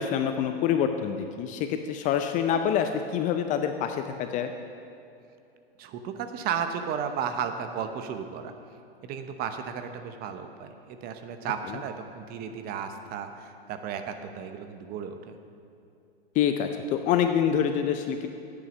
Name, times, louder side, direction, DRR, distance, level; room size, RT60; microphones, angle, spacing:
voice 1, 0.0-4.5 16.4-18.3, left 8 dB, 25° left, 7 dB, 0.4 m, -26 dB
voice 2, 5.8-8.5 9.0-15.4, right 7 dB, 30° right, 8 dB, 0.8 m, -34 dB
9.6 x 8.4 x 6.1 m, 2.6 s
hypercardioid pair, 115°, 31 cm